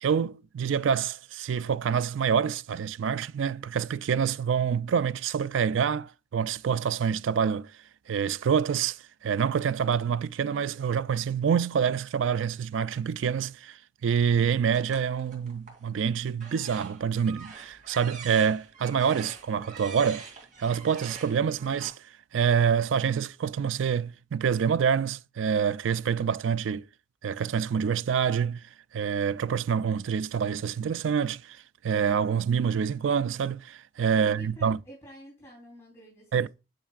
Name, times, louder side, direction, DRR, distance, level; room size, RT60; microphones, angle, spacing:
voice 1, 0.0-7.7 8.1-9.0 9.2-13.8 14.0-20.3 20.6-21.9 22.3-26.8 27.2-28.6 28.9-31.6 31.8-34.8 36.3-36.5, right 7 dB, 80° right, 0.4 m, -26 dB
sound 1, 14.7-15.9 16.3-21.9, right 5 dB, 45° right, 3.0 m, -45 dB
voice 2, 34.2-36.5, left 1 dB, 15° left, 3.6 m, -49 dB
8.9 x 6.6 x 2.5 m
head